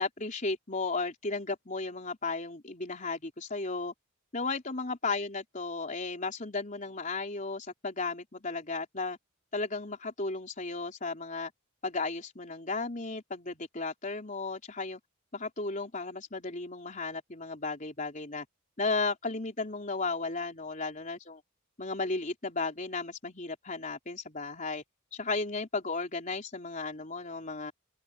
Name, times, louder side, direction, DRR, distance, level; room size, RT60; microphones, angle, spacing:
voice 1, 0.0-3.9 4.3-9.2 9.5-11.5 11.8-15.0 15.3-18.5 18.8-21.4 21.8-24.8 25.1-27.7, left 3 dB, 35° left, 3.8 m, -34 dB
open air
head